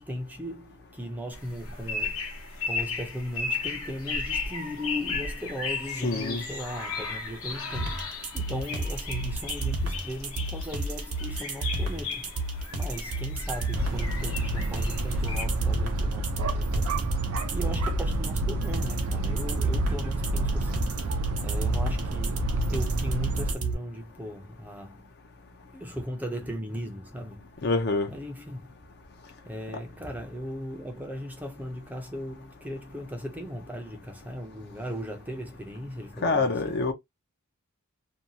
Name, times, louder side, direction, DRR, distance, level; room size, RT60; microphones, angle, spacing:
voice 1, 0.0-2.2 2.7-8.0 8.3-12.3 12.7-16.9 17.5-20.9 21.4-25.1 25.7-27.5 28.1-28.7 29.4-36.8, equal, 5° right, 0.5 m, -37 dB
sound 1, 1.3-15.4, left 4 dB, 65° left, 1.0 m, -35 dB
voice 2, 6.0-6.4 27.6-28.1 36.2-36.9, left 3 dB, 45° left, 0.6 m, -26 dB
sound 2, 7.7-23.7, right 2 dB, 90° right, 0.9 m, -31 dB
sound 3, 13.7-23.5, right 2 dB, 65° right, 0.5 m, -29 dB
2.7 x 2.3 x 2.7 m
head